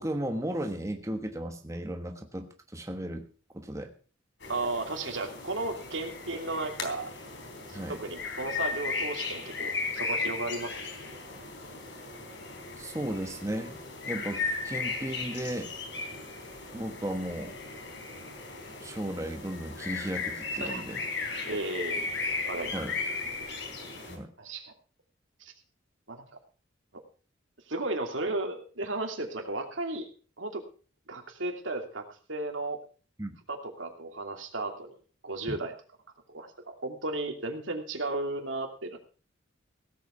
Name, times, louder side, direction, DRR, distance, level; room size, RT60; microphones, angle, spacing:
voice 1, 0.0-3.3 3.5-3.9 7.7-8.0 12.8-15.7 16.7-17.5 18.8-21.0 22.7-22.9 24.1-24.3 33.2-33.4 35.5-35.6, right 1 dB, 15° right, 5 dB, 1.3 m, -35 dB
sound 1, 4.4-24.2, left 4 dB, 65° left, 3.7 m, -36 dB
voice 2, 4.5-7.1 7.7-10.7 20.6-20.8 21.4-22.1 22.5-22.8 24.4-24.7 25.4-25.5 26.1-26.2 27.7-30.1 30.4-30.6 31.1-32.8 33.5-35.0 35.2-35.7 36.3-39.0, right 2 dB, 85° right, 4 dB, 2.8 m, -34 dB
17.0 x 8.3 x 5.8 m, 0.39 s
head